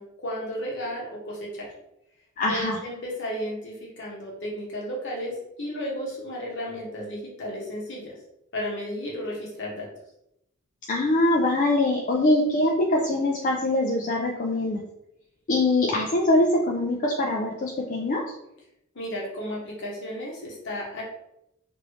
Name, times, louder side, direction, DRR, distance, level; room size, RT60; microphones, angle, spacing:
voice 1, 0.0-1.7 2.5-8.1 8.5-9.9 18.9-21.0, equal, 60° left, -3 dB, 1.0 m, -33 dB
voice 2, 2.4-2.8 10.9-14.8 15.5-18.2, left 1 dB, 40° left, -1 dB, 0.3 m, -23 dB
3.0 x 2.6 x 3.0 m, 0.82 s
head